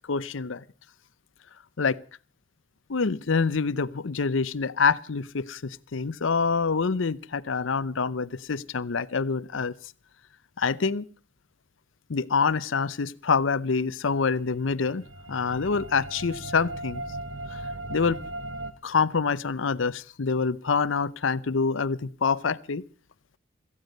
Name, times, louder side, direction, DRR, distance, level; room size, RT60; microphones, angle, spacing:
voice 1, 0.1-0.6 1.8-2.0 2.9-9.7 10.6-11.1 12.1-17.0 17.5-17.6 17.9-18.2 18.8-22.8, left 5 dB, 80° left, 0.7 m, -26 dB
sound 1, 14.4-18.7, right 1 dB, 90° right, 1.3 m, -38 dB
17.5 x 14.5 x 5.3 m
head